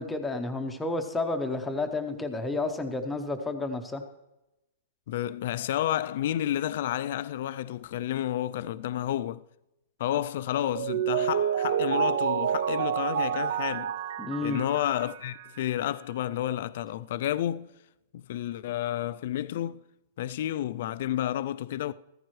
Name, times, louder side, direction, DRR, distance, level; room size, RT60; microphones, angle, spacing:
voice 1, 0.0-4.0 14.2-14.6, left 2 dB, 5° left, 0.7 m, -31 dB
voice 2, 5.1-9.4 10.0-14.0 14.4-17.7 18.1-19.8 20.2-21.9, left 12 dB, 50° left, 0.3 m, -30 dB
Mallet percussion, 10.6-15.6, right 8 dB, 50° right, 0.4 m, -29 dB
14.5 x 14.0 x 3.2 m
supercardioid pair, 175°, 0 cm